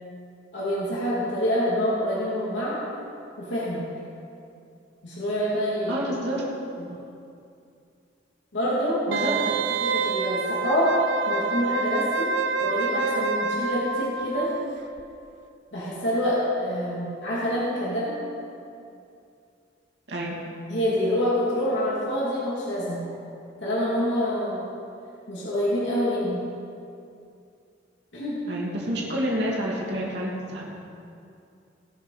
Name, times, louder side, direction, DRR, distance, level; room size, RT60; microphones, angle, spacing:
voice 1, 0.5-2.8 3.4-3.8 5.0-6.3 6.8-7.0 8.5-9.3 9.8-10.9 11.2-12.3 12.6-14.5 15.7-18.2 20.7-23.0 23.6-24.6 25.3-26.4 28.1-28.4, equal, 75° left, -7 dB, 2.6 m, -26 dB
voice 2, 5.9-6.4 9.1-9.3 20.1-20.4 28.5-30.7, equal, 65° right, -4 dB, 2.8 m, -29 dB
Wind instrument woodwind instrument, 9.1-14.7 15.0-15.1, right 3 dB, 85° right, 0.7 m, -27 dB
19.5 x 6.5 x 5.8 m, 2.5 s
head